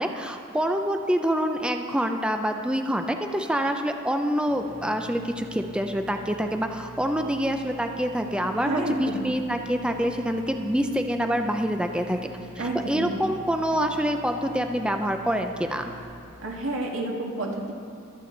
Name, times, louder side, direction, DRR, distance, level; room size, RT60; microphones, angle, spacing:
voice 1, 0.0-12.3 12.6-15.8, equal, 5° right, 5 dB, 0.5 m, -26 dB
sound 1, 4.5-16.0, right 2 dB, 25° left, 3.3 m, -45 dB
voice 2, 8.5-9.3 12.6-13.4 16.4-17.7, right 2 dB, 85° right, 0 dB, 1.9 m, -30 dB
24.5 x 8.4 x 3.9 m, 2.7 s
head